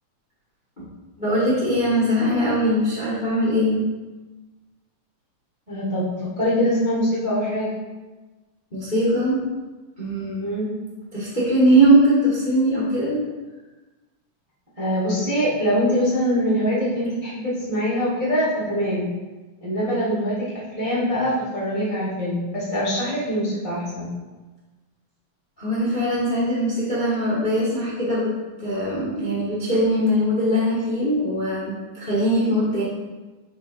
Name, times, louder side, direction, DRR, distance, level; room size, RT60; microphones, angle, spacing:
voice 1, 1.2-3.8 8.7-9.4 10.0-10.5 11.1-13.2 25.6-28.3 28.6-32.8, right 1 dB, 50° left, -7 dB, 0.5 m, -21 dB
voice 2, 5.7-7.7 10.4-10.7 14.8-19.1 19.6-24.1, equal, 55° right, -8 dB, 0.3 m, -23 dB
7.5 x 3.3 x 4.6 m, 1.2 s
omnidirectional pair, 3.7 m